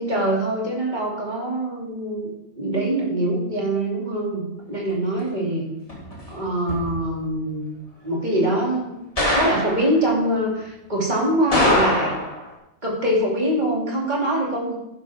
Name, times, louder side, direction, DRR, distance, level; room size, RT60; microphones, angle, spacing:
voice 1, 0.0-2.3 2.6-5.7 6.3-7.7 8.0-8.9 9.3-12.1 12.8-14.7, right 1 dB, 30° right, -3 dB, 2.9 m, -23 dB
sound 1, 5.9-6.3 6.7-6.9 9.2-9.9 11.5-12.4, left 1 dB, 25° left, 2.7 m, -22 dB
11.0 x 10.5 x 3.6 m, 0.87 s
omnidirectional pair, 1.4 m